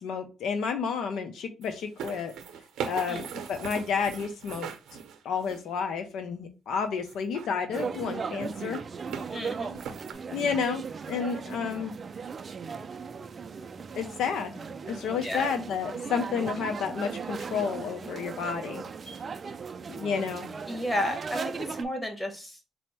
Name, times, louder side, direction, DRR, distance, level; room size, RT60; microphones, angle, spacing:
voice 1, 0.0-2.3 2.8-4.7 5.2-8.8 10.3-11.9 14.0-14.5 14.9-18.8 20.0-20.5, left 6 dB, 75° left, 7 dB, 0.5 m, -31 dB
sound 1, 1.6-5.8 7.0-8.0 8.4-9.3 9.7-10.1, right 7 dB, 80° right, 0.6 m, -39 dB
sound 2, 7.7-21.8, right 5 dB, 40° right, 0.3 m, -37 dB
voice 2, 9.3-9.7 15.2-15.5 19.1-19.2 20.7-21.4 21.8-22.5, left 1 dB, 15° left, 4 dB, 1.3 m, -32 dB
4.3 x 2.1 x 4.2 m, 0.31 s
cardioid pair, 90°, 0 cm